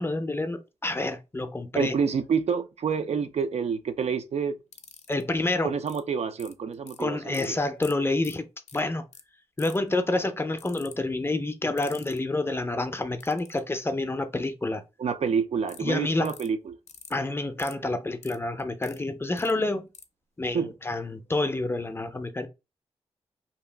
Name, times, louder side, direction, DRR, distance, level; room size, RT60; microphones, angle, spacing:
voice 1, 0.0-2.0 5.1-5.7 7.0-8.5 8.7-9.0 9.6-14.8 15.8-16.3 17.1-19.9 20.4-22.5, left 2 dB, 20° left, 0.5 m, -28 dB
voice 2, 1.8-4.6 5.6-7.6 15.0-16.8 20.5-20.7, right 6 dB, 70° right, 0.4 m, -28 dB
sound 1, 4.7-5.2 5.9-6.0 6.4-7.0 7.3-7.5 7.8-7.9 8.2-8.4 8.7-8.8 9.1-9.2 9.6-9.9 10.6-10.9 11.8-12.2 13.2-13.6 15.7-15.8 16.2-16.5 16.9-17.1 17.6-17.7 18.2-19.0 19.4-19.5 19.9-20.0, left 6 dB, 80° left, 0.5 m, -45 dB
2.8 x 2.3 x 3.3 m
wide cardioid pair, 90°, 11 cm